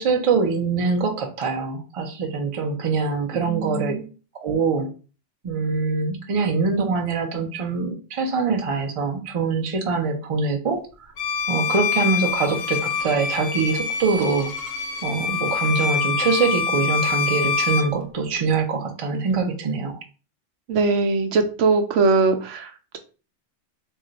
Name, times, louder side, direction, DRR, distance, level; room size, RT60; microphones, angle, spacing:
voice 1, 0.0-3.9 4.3-4.9 5.4-11.1 11.5-14.5 15.0-20.0, right 4 dB, 55° right, 3 dB, 0.4 m, -24 dB
voice 2, 3.3-4.1 20.7-23.0, right 4 dB, 80° right, 6 dB, 0.9 m, -21 dB
Bowed string instrument, 11.2-18.0, left 6 dB, 65° left, 0.7 m, -25 dB
2.3 x 2.1 x 3.8 m, 0.36 s
omnidirectional pair, 1.3 m